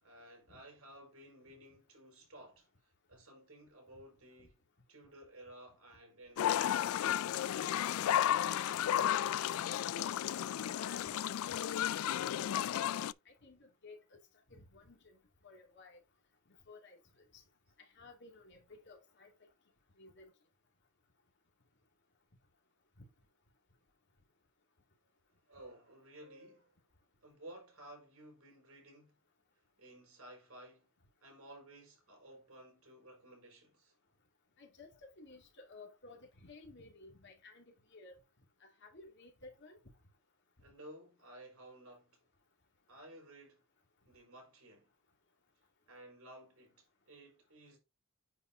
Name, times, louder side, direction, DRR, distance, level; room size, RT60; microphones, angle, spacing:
voice 1, 0.0-4.6 4.9-7.8 8.1-10.3 25.5-26.7 27.2-29.2 29.8-30.9 31.2-33.9 40.6-42.2 42.9-43.6 44.1-44.9 45.9-47.8, right 1 dB, 90° right, 4.8 m, -56 dB
sound 1, 6.4-13.1, left 11 dB, 75° left, 0.3 m, -33 dB
voice 2, 10.7-11.3 11.6-12.6 13.3-14.2 14.5-15.2 15.4-16.0 16.7-17.0 17.3-17.4 18.0-19.3 20.0-20.3 23.0-23.1 34.6-38.2 38.6-39.8, left 3 dB, 55° left, 2.6 m, -56 dB
9.4 x 4.8 x 2.7 m
head